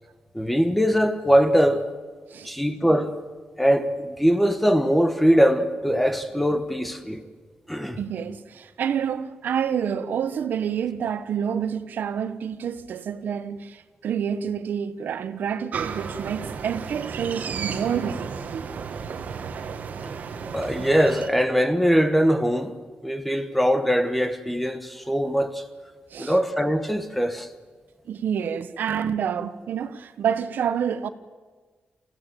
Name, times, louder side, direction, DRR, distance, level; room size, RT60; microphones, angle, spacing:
voice 1, 0.3-1.9 2.4-3.2 3.6-7.2 7.7-8.0 20.0-22.7 23.0-25.6 26.2-27.5, equal, 5° left, 1.1 m, -22 dB
voice 2, 8.0-18.6 26.1-26.3 28.1-31.1, right 8 dB, 70° right, 1.0 m, -28 dB
sound 1, 15.7-21.3, right 6 dB, 55° right, 1.5 m, -33 dB
28.5 x 15.5 x 9.1 m
wide cardioid pair, 180°, 3 cm